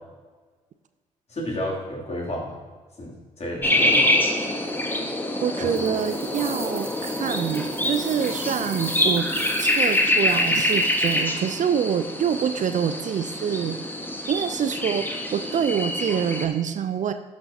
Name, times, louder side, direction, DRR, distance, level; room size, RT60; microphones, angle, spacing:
voice 1, 1.3-2.6 3.0-4.1 5.6-5.7, equal, 40° left, -3 dB, 2.8 m, -31 dB
sound 1, 3.6-16.5, left 1 dB, 10° left, 1.4 m, -25 dB
voice 2, 5.4-9.3 9.6-13.8 14.3-17.1, right 8 dB, 50° right, 10 dB, 0.5 m, -26 dB
sound 2, 5.7-11.2, right 2 dB, 15° right, 1.2 m, -40 dB
12.0 x 6.4 x 2.8 m, 1.4 s
hypercardioid pair, 45°, 17 cm